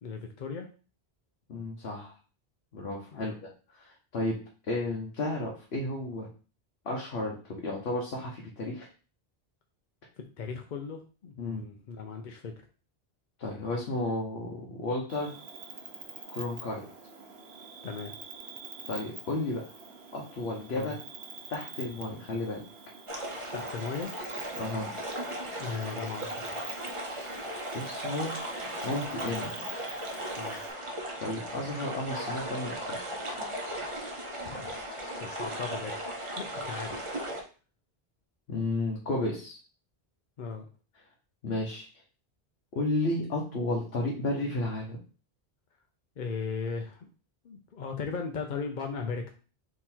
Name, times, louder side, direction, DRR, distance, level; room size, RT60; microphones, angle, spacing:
voice 1, 0.0-0.7 3.1-3.3 10.2-12.5 17.8-18.1 20.7-20.9 23.5-24.1 25.6-26.7 30.4-30.6 34.4-34.8 35.2-37.0 40.4-40.7 46.2-47.1 47.4-49.3, left 5 dB, 55° left, 4 dB, 0.6 m, -37 dB
voice 2, 1.5-2.1 2.7-3.5 3.8-4.4 4.7-6.3 6.8-8.9 11.4-11.6 13.4-15.3 16.3-16.8 18.9-19.6 20.1-20.9 21.5-22.6 24.6-24.9 27.7-28.3 28.8-29.5 31.2-33.0 38.5-39.6 41.4-41.9 42.7-45.0, left 2 dB, 75° left, -2 dB, 1.2 m, -32 dB
Cricket, 15.1-30.7, right 4 dB, 80° right, 1.2 m, -46 dB
sound 1, 23.1-37.4, right 1 dB, 30° right, 0.8 m, -37 dB
3.8 x 3.0 x 4.3 m, 0.36 s
omnidirectional pair, 1.1 m